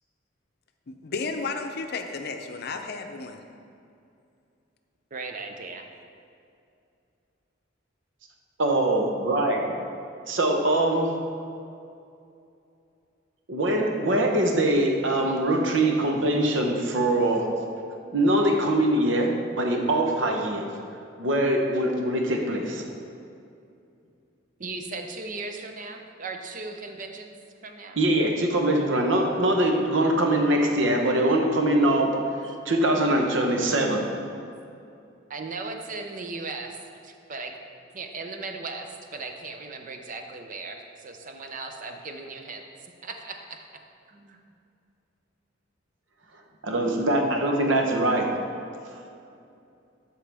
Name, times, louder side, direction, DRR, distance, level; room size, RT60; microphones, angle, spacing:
voice 1, 0.9-3.4, left 4 dB, 55° left, 5 dB, 0.6 m, -33 dB
voice 2, 5.1-5.9 24.6-27.3 27.6-28.0 35.3-37.5 37.9-43.7 44.1-44.4, right 3 dB, 45° right, 4 dB, 0.7 m, -37 dB
voice 3, 8.6-9.7 10.3-11.2 13.5-17.5 18.1-20.7 21.2-22.9 28.0-32.2 32.4-34.1 46.6-48.3, right 1 dB, 70° right, 2 dB, 1.0 m, -23 dB
12.5 x 4.5 x 3.5 m, 2.6 s
head